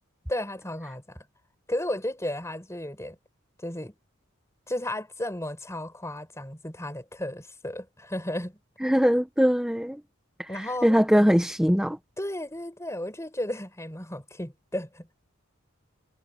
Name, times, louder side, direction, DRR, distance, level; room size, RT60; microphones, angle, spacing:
voice 1, 0.3-1.3 1.7-3.2 3.6-3.9 4.7-8.6 10.5-11.0 12.2-15.1, left 1 dB, 15° left, 5.2 m, -34 dB
voice 2, 8.8-10.0 10.4-12.0, equal, 5° right, 1.0 m, -22 dB
head